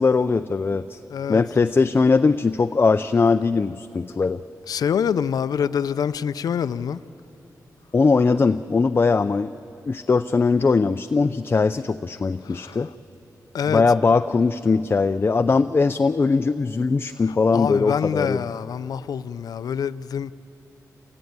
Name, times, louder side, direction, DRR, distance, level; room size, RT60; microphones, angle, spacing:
voice 1, 0.0-1.0 1.3-4.4 7.9-9.5 9.9-12.9 13.7-18.5, left 4 dB, 35° left, 0.5 m, -20 dB
voice 2, 1.1-1.4 4.7-7.0 12.5-12.8 13.5-13.8 17.5-20.3, left 7 dB, 85° left, 0.5 m, -25 dB
27.5 x 19.0 x 9.6 m
wide cardioid pair, 95°, 6 cm